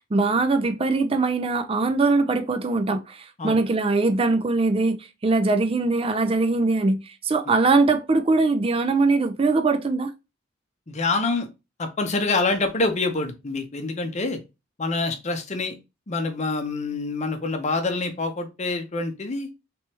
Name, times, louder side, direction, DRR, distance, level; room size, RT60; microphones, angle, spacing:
voice 1, 0.1-5.0 5.2-10.1, right 3 dB, 30° right, 0.4 m, -21 dB
voice 2, 10.9-11.5 11.8-14.4 14.8-15.7 16.1-19.5, left 3 dB, 35° left, 0.7 m, -26 dB
3.3 x 3.1 x 3.0 m
head